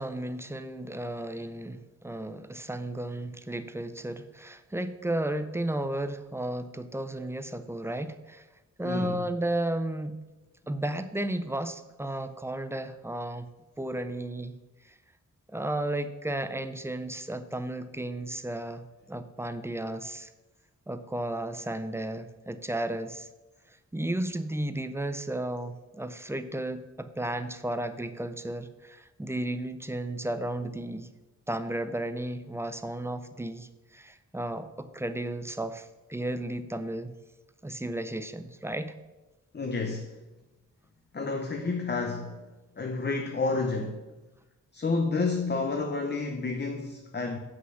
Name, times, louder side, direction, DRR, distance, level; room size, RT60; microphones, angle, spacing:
voice 1, 0.0-8.5 8.8-10.1 10.7-13.5 13.8-14.5 15.5-18.8 19.1-20.3 20.9-23.3 23.9-31.1 31.5-37.1 37.6-38.9, right 1 dB, 10° right, 10 dB, 0.5 m, -33 dB
voice 2, 8.8-9.2 39.5-40.2 41.1-44.1 44.7-47.4, left 3 dB, 35° left, 4 dB, 0.7 m, -30 dB
8.1 x 5.9 x 6.2 m, 1.1 s
wide cardioid pair, 135°, 31 cm